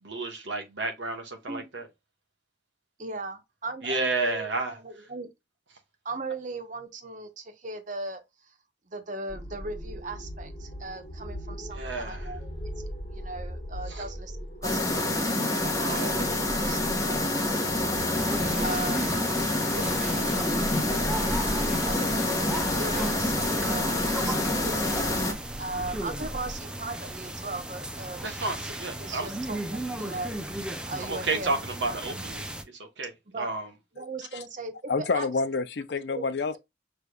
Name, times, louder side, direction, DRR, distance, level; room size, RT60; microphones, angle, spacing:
voice 1, 0.0-1.8 3.8-4.7 11.8-12.2 13.9-14.0 15.9-16.1 18.5-18.6 23.9-24.2 28.2-29.3 31.0-32.4 33.0-33.1 33.4-33.6, right 3 dB, 75° right, 1.2 m, -31 dB
voice 2, 3.0-5.3 6.0-8.6 8.9-12.7 13.1-19.2 19.6-20.4 20.9-25.1 25.6-31.6 31.9-32.3 33.3-33.5 33.9-35.3 36.1-36.2, right 3 dB, 40° right, 0.9 m, -39 dB
sound 1, 9.3-26.6, equal, 35° left, 1.4 m, -39 dB
sound 2, 14.6-25.3, left 1 dB, 15° left, 1.0 m, -27 dB
sound 3, 18.1-32.6, right 1 dB, 5° right, 0.5 m, -36 dB
voice 3, 34.9-36.6, left 4 dB, 60° left, 0.5 m, -28 dB
6.5 x 3.3 x 2.3 m
head